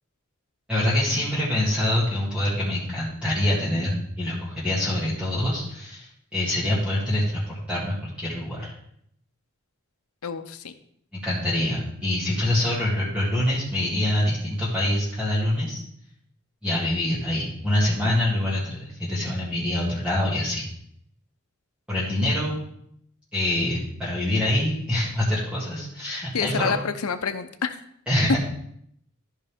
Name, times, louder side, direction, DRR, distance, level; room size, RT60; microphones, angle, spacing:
voice 1, 0.7-8.7 11.1-15.8 16.6-20.6 21.9-22.6 23.3-26.7 28.1-28.4, left 1 dB, 5° right, -9 dB, 2.1 m, -25 dB
voice 2, 10.2-10.7 26.3-27.8, left 6 dB, 90° left, 9 dB, 0.7 m, -28 dB
13.0 x 5.4 x 3.5 m, 0.71 s
head